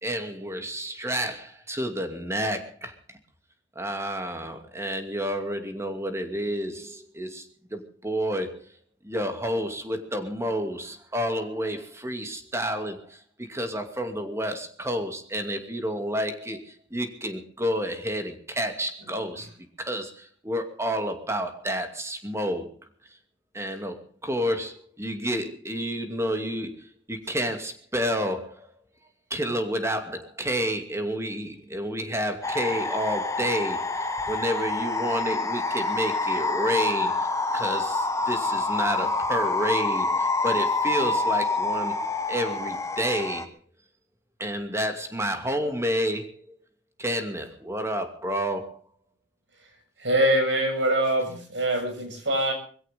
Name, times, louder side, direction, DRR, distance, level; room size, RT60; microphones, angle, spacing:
voice 1, 0.0-2.9 3.8-8.6 9.0-16.6 16.9-19.5 19.8-22.7 23.5-28.7 29.3-37.3 37.5-42.0 42.3-43.6 44.4-46.3 47.0-48.8, equal, 15° right, 6 dB, 2.5 m, -30 dB
sound 1, 32.4-43.4, left 3 dB, 15° left, 1.3 m, -27 dB
voice 2, 50.0-52.5, right 1 dB, 85° right, 4 dB, 7.1 m, -24 dB
22.0 x 16.5 x 3.6 m, 0.43 s
head